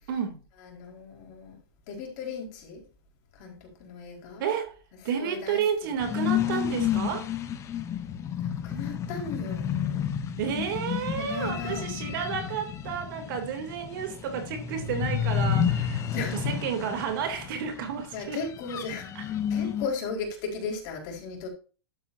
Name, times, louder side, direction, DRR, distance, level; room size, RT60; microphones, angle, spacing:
voice 1, 0.6-1.6 1.9-2.8 3.4-4.5 5.2-5.9 8.4-10.1 11.2-11.8 16.1-16.5 18.1-21.5, left 4 dB, 45° left, 4.5 m, -36 dB
voice 2, 4.4-4.7 5.0-7.3 10.4-18.4 19.1-19.2, right 7 dB, 55° right, 2.9 m, -31 dB
sound 1, 6.0-19.9, left 8 dB, 20° left, 1.2 m, -31 dB
12.0 x 8.9 x 2.7 m
hypercardioid pair, 135°, 13 cm